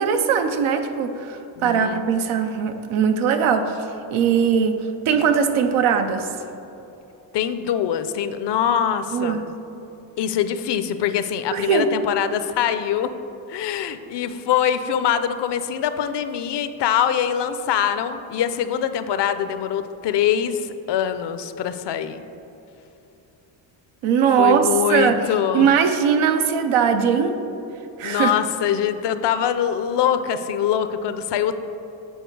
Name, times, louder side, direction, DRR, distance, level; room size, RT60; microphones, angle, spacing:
voice 1, 0.0-3.8 4.1-4.8 5.1-6.3 9.1-9.4 11.5-11.9 24.0-25.2 25.5-27.3 28.0-28.3, right 7 dB, 85° right, 7 dB, 0.7 m, -20 dB
voice 2, 1.6-2.0 7.3-9.4 10.2-13.1 13.5-22.2 24.4-25.7 28.0-31.7, left 9 dB, 60° left, 11 dB, 0.5 m, -23 dB
8.2 x 4.4 x 4.6 m, 3.0 s
cardioid pair, 100°, 48 cm